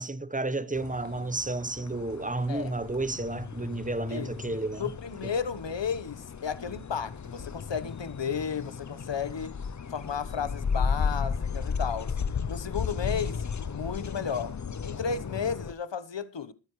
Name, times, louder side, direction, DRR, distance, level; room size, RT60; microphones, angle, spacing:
voice 1, 0.0-4.9 5.2-5.3, right 2 dB, 15° right, 1.0 m, -32 dB
sound 1, 0.7-15.7, left 6 dB, 40° left, 0.6 m, -34 dB
voice 2, 4.8-9.5 9.9-12.2 12.5-14.6 14.8-16.5, left 6 dB, 70° left, 1.2 m, -33 dB
22.0 x 9.3 x 3.2 m
wide cardioid pair, 70°, 45 cm